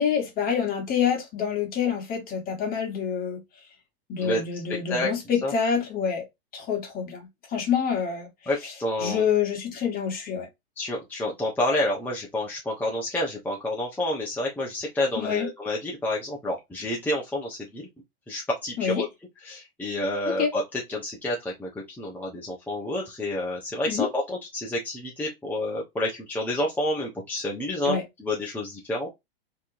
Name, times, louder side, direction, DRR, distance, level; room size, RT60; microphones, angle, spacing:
voice 1, 0.0-3.4 4.1-6.2 6.5-8.3 9.0-10.5 15.2-15.5 18.8-19.0 20.3-20.5 23.9-24.1 27.8-28.0, left 7 dB, 30° left, 1.4 m, -27 dB
voice 2, 8.5-9.2 10.8-17.9 18.3-19.1 19.4-21.7 22.0-29.1, left 1 dB, 5° left, 0.8 m, -29 dB
3.4 x 2.9 x 2.6 m
hypercardioid pair, 120°, 30 cm